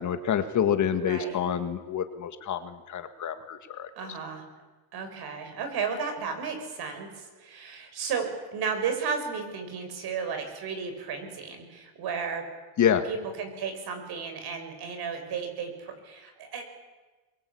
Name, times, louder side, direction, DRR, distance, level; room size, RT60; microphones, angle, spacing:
voice 1, 0.0-3.9 12.8-13.0, left 8 dB, 40° left, 9 dB, 1.8 m, -27 dB
voice 2, 1.0-1.4 4.0-4.4 4.9-12.4 13.1-16.6, right 6 dB, 55° right, 7 dB, 6.2 m, -34 dB
24.5 x 22.5 x 8.6 m, 1.2 s
cardioid pair, 130°, 45 cm